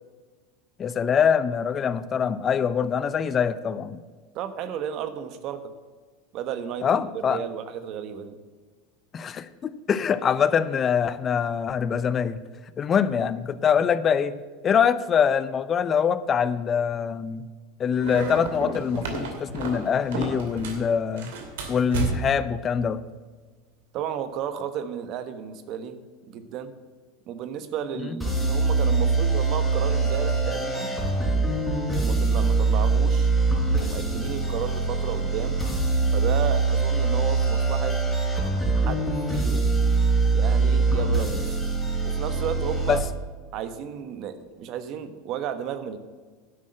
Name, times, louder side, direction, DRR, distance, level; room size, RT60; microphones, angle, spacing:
voice 1, 0.8-4.0 6.8-7.4 9.1-12.4 12.8-14.4 14.6-17.4 17.8-21.3 21.7-23.0 42.9-43.0, left 7 dB, 35° left, 15 dB, 0.6 m, -24 dB
voice 2, 4.3-5.7 6.3-8.4 23.9-26.0 26.3-26.7 27.3-30.9 31.9-33.3 33.8-35.6 36.1-38.0 38.5-39.7 40.3-41.4 42.0-43.0 43.5-46.0, right 9 dB, 50° right, 10 dB, 1.2 m, -33 dB
sound 1, 18.0-20.9 21.2-22.5, right 3 dB, 75° right, 2.4 m, -31 dB
sound 2, 28.2-43.0, right 3 dB, ahead, 4.0 m, -23 dB
11.0 x 6.3 x 7.7 m, 1.4 s
hypercardioid pair, 100°, 0 cm